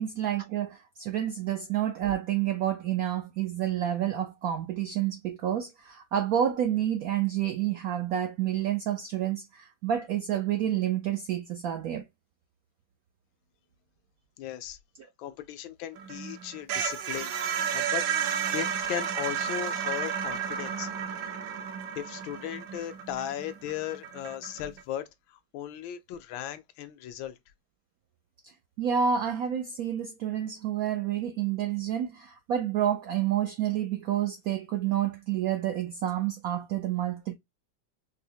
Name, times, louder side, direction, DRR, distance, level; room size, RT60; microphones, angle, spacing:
voice 1, 0.0-12.0 28.4-28.5 28.8-37.3, right 10 dB, 85° right, 0.7 m, -29 dB
voice 2, 14.4-14.8 15.2-18.1 18.5-20.9 22.0-27.4, left 11 dB, 85° left, 1.3 m, -37 dB
sound 1, 16.0-24.8, right 8 dB, 70° right, 1.1 m, -32 dB
4.7 x 2.0 x 2.7 m
omnidirectional pair, 2.1 m